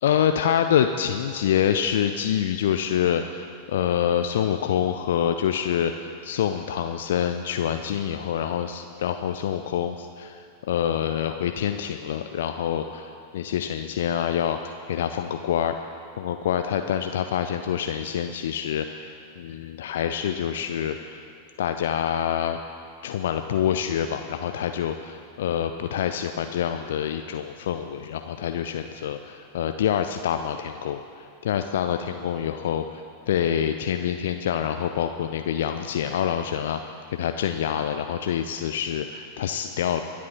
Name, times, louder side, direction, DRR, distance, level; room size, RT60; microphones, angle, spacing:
voice 1, 0.0-15.7 16.2-21.2 21.6-22.6 23.0-40.0, left 9 dB, 60° left, 7 dB, 0.5 m, -26 dB
23.5 x 8.5 x 4.4 m, 2.4 s
figure-of-eight pair, 90°, 0 cm